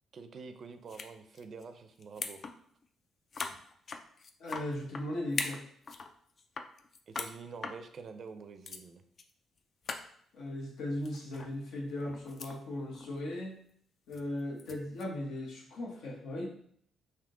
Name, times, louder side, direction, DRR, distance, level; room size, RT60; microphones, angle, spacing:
voice 1, 0.1-2.4 7.1-9.0, right 5 dB, 55° right, 9 dB, 0.4 m, -47 dB
sound 1, 0.9-1.1 1.4-1.6 2.0-2.6 2.8-2.9 3.3-5.0 5.3-6.1 6.4-7.3 7.6-7.8 8.3-8.4 8.7-8.8 9.2-9.3 9.6-9.7 9.8-10.1 11.0-11.5 11.9-12.6 12.9-13.2 14.1-15.0, left 4 dB, 50° left, 0.4 m, -40 dB
voice 2, 4.4-5.6 10.3-13.6 14.1-16.5, left 1 dB, 75° left, 0 dB, 1.0 m, -37 dB
3.6 x 2.7 x 3.7 m, 0.64 s
cardioid pair, 90°, 0 cm